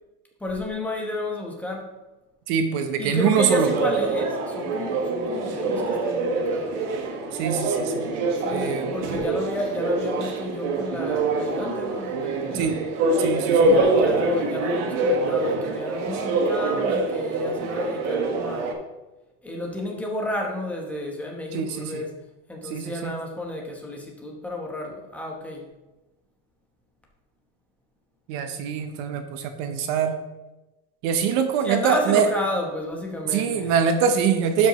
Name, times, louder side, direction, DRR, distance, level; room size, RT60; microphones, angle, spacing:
voice 1, 0.4-1.9 3.0-6.8 8.4-12.7 13.7-18.7 19.4-22.1 22.5-25.7 31.6-33.7, left 1 dB, 5° left, 0 dB, 1.0 m, -32 dB
voice 2, 2.5-3.7 7.3-8.1 8.5-8.9 12.5-12.8 13.2-13.8 21.5-22.1 22.6-23.2 28.3-30.2 31.0-32.3 33.3-34.7, right 7 dB, 50° right, 7 dB, 0.7 m, -23 dB
sound 1, 3.5-18.7, right 2 dB, 70° right, 1.5 m, -25 dB
11.5 x 5.3 x 3.0 m, 1.1 s
supercardioid pair, 165°, 37 cm